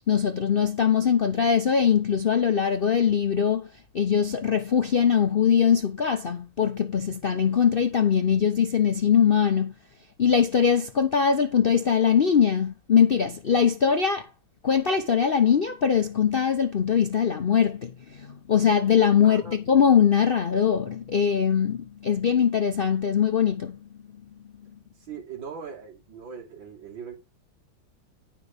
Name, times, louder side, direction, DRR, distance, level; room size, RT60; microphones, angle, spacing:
voice 1, 0.1-3.7 3.9-9.7 10.2-14.3 14.6-23.9, left 7 dB, 85° left, 0.5 m, -22 dB
voice 2, 19.2-19.6 25.0-27.1, right 6 dB, 70° right, 3.7 m, -40 dB
10.0 x 5.9 x 5.0 m
omnidirectional pair, 2.1 m